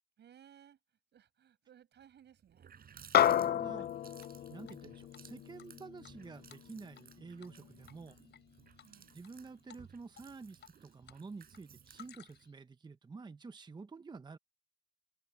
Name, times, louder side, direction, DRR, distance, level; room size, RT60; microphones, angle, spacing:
voice 1, 0.2-3.4 8.8-9.2, right 9 dB, 80° right, 7.2 m, -62 dB
Water tap faucet, 2.0-2.1 2.4-12.5, right 7 dB, 60° right, 4.5 m, -59 dB
sound 1, 3.1-7.8, left 10 dB, 65° left, 0.5 m, -32 dB
voice 2, 3.4-3.9 4.5-8.2 9.1-14.4, right 4 dB, 25° right, 0.7 m, -49 dB
Drip, 4.2-4.8 5.1-5.2 5.6-7.1 7.4-7.6 7.9-8.4 8.8-9.3 9.7-9.9 10.1-11.2 11.5-12.6, left 9 dB, 85° left, 4.2 m, -58 dB
wide cardioid pair, 130°, 18 cm